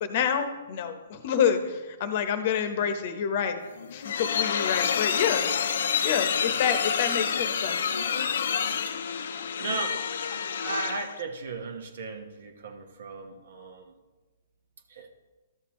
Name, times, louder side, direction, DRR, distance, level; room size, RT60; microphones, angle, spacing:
voice 1, 0.0-3.6 3.9-5.4 6.0-7.8, left 8 dB, 50° left, 9 dB, 0.9 m, -27 dB
sound 1, 3.7-11.2, left 7 dB, 65° left, 0.5 m, -28 dB
voice 2, 8.9-9.2 9.6-13.9 14.9-15.1, right 3 dB, 65° right, 5 dB, 1.2 m, -36 dB
12.5 x 6.9 x 3.1 m, 1.2 s
hypercardioid pair, 135°, 0 cm